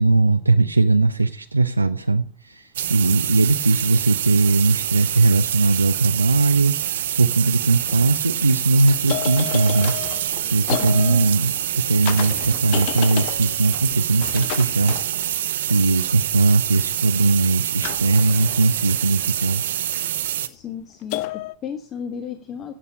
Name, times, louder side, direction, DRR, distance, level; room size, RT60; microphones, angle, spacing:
voice 1, 0.0-11.5 11.8-15.4 15.7-19.6, right 3 dB, 85° right, 8 dB, 0.6 m, -19 dB
sound 1, 2.8-20.5, right 11 dB, 60° right, 1.1 m, -26 dB
sound 2, 6.9-7.0 7.6-8.0 8.9-15.8 17.8-19.8 21.1-21.6, left 18 dB, 45° left, 0.5 m, -32 dB
voice 2, 10.8-11.4 20.5-22.7, left 7 dB, 30° left, 8 dB, 1.4 m, -34 dB
15.5 x 8.3 x 5.8 m, 0.41 s
figure-of-eight pair, 90°, 0 cm